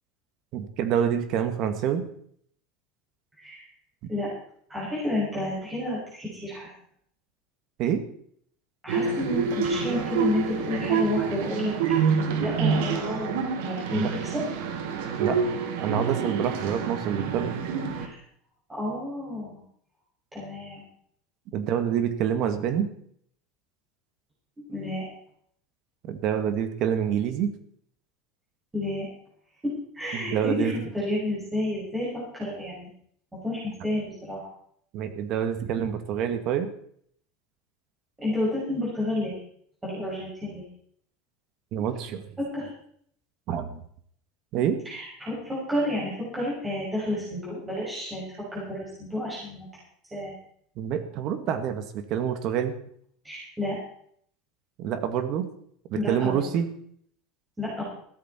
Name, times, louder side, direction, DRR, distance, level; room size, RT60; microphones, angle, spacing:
voice 1, 0.5-2.0 7.8-8.0 13.9-14.1 15.2-15.4 15.8-17.5 21.5-22.9 26.1-27.5 30.1-30.7 34.9-36.7 41.7-42.3 43.5-43.8 44.5-44.8 50.8-52.7 54.8-55.5 55.9-56.7, right 8 dB, 45° right, 9 dB, 1.9 m, -27 dB
voice 2, 4.7-6.7 8.8-11.7 12.0-14.4 17.9-18.2 18.7-19.6 20.3-20.8 24.7-25.1 28.7-29.1 29.6-32.9 33.3-34.4 38.2-39.4 39.8-40.6 42.4-42.7 44.8-49.7 50.1-50.3 53.2-53.8 55.9-56.4 57.6-57.8, left 1 dB, 10° right, -7 dB, 6.7 m, -30 dB
sound 1, 8.9-18.1, right 6 dB, 75° right, 2.4 m, -27 dB
15.5 x 13.0 x 4.4 m, 0.64 s
supercardioid pair, 145°, 0 cm